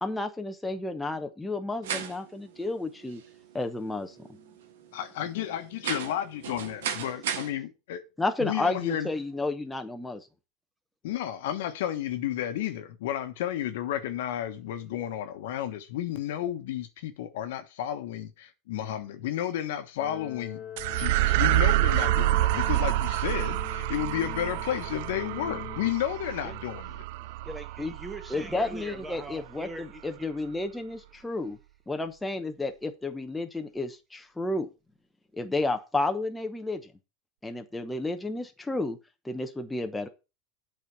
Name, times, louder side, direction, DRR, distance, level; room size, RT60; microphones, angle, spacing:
voice 1, 0.0-3.2 3.5-4.4 8.2-10.3 27.8-27.9 28.3-31.6 31.9-34.7 35.3-36.9 37.4-39.0 39.2-40.1, left 2 dB, 10° left, 1.0 m, -31 dB
sound 1, 1.8-7.5, right 8 dB, 85° right, 1.2 m, -37 dB
voice 2, 4.9-8.0 8.4-9.1 11.0-20.6 21.0-26.9, left 11 dB, 75° left, 1.3 m, -32 dB
voice 3, 7.1-7.5 26.4-26.6 26.9-30.3, right 1 dB, 10° right, 1.5 m, -43 dB
sound 2, 20.0-25.9, left 8 dB, 35° left, 1.2 m, -42 dB
sound 3, 20.8-29.4, right 18 dB, 65° right, 0.3 m, -28 dB
8.1 x 4.3 x 6.8 m
supercardioid pair, 120°, 0 cm